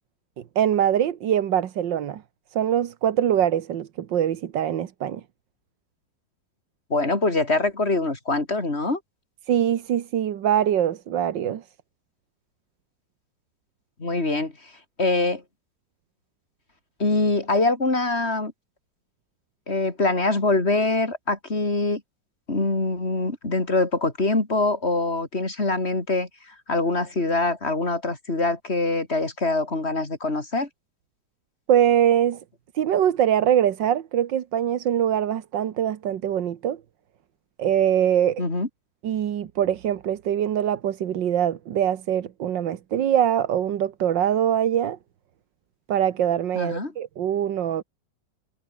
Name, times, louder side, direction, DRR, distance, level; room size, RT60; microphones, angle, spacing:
voice 1, 0.6-2.2 2.5-5.2 9.5-11.6 31.7-32.4 32.8-36.8 37.6-38.4 39.0-45.0 45.9-47.8, right 10 dB, 90° right, 1.9 m, -23 dB
voice 2, 6.9-9.0 14.0-15.4 17.0-18.5 19.7-22.0 22.5-30.7 38.4-38.7 46.5-46.9, left 2 dB, 35° left, 4.2 m, -24 dB
omnidirectional pair, 1.9 m